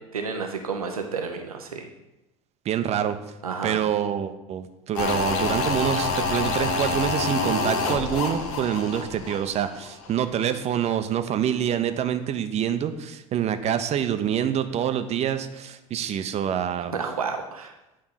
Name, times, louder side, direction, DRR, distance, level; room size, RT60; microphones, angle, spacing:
voice 1, 0.1-1.9 3.4-3.8 16.9-17.7, right 5 dB, 85° right, 5 dB, 0.8 m, -30 dB
voice 2, 2.6-3.2 3.6-16.9, right 9 dB, 35° right, 9 dB, 0.8 m, -26 dB
sound 1, 4.9-10.1 10.4-10.5, left 4 dB, 65° left, 1.2 m, -27 dB
9.0 x 4.7 x 5.7 m, 0.94 s
figure-of-eight pair, 75°, 18 cm